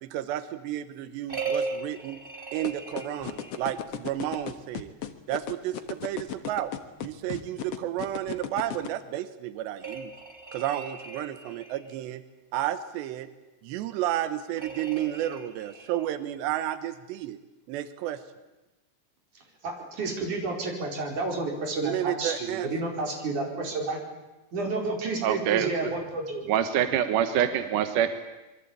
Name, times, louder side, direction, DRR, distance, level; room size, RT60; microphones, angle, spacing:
voice 1, 0.0-2.2 2.5-4.9 5.3-6.7 7.0-10.1 10.5-12.2 12.5-13.3 13.6-17.4 17.7-18.2 21.8-22.9, right 12 dB, 90° right, 12 dB, 3.2 m, -32 dB
sound 1, 1.3-3.8 9.8-11.9 14.6-16.1, right 4 dB, 20° right, 1.4 m, -37 dB
sound 2, 2.6-8.9, left 10 dB, 60° left, 1.6 m, -34 dB
voice 2, 19.6-24.0 24.5-26.4, right 3 dB, 45° right, 2 dB, 6.0 m, -30 dB
voice 3, 25.2-25.7 26.5-28.1, right 9 dB, 65° right, 9 dB, 2.4 m, -24 dB
26.5 x 23.0 x 8.8 m, 1.1 s
omnidirectional pair, 4.8 m